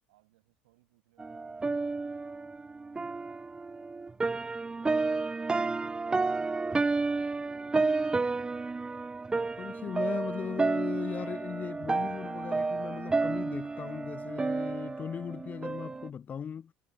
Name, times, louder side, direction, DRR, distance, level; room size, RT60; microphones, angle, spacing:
voice 1, 0.1-2.6 3.1-6.6, right 21 dB, 70° right, 7.3 m, -71 dB
sound 1, 1.2-16.1, right 3 dB, 15° right, 0.6 m, -31 dB
voice 2, 9.6-16.7, left 7 dB, 35° left, 0.5 m, -38 dB
figure-of-eight pair, 60°, 5 cm